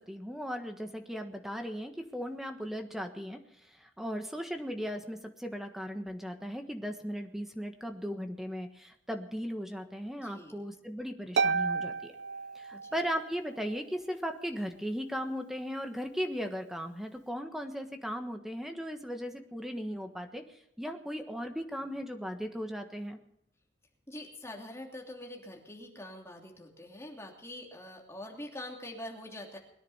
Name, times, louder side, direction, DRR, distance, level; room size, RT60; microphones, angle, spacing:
voice 1, 0.1-3.4 3.8-12.1 12.5-20.4 20.8-23.2, equal, ahead, 5 dB, 1.4 m, -37 dB
voice 2, 10.2-10.6 12.7-12.9 24.1-29.6, left 1 dB, 15° left, 0 dB, 2.9 m, -44 dB
Harp, 11.4-13.2, right 5 dB, 75° right, 0.5 m, -31 dB
21.5 x 10.5 x 5.7 m, 0.77 s
head